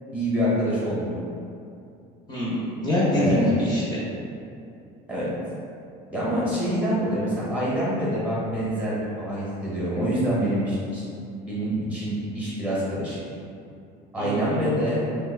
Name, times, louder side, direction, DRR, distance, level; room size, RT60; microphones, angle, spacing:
voice 1, 0.1-1.2 3.1-3.5 5.1-5.3 6.1-11.0 11.5-13.2 14.1-15.0, equal, 5° right, -8 dB, 0.8 m, -26 dB
voice 2, 2.3-4.0 14.2-14.5, left 1 dB, 25° left, -9 dB, 0.6 m, -24 dB
3.1 x 2.3 x 3.3 m, 2.6 s
cardioid pair, 165°, 18 cm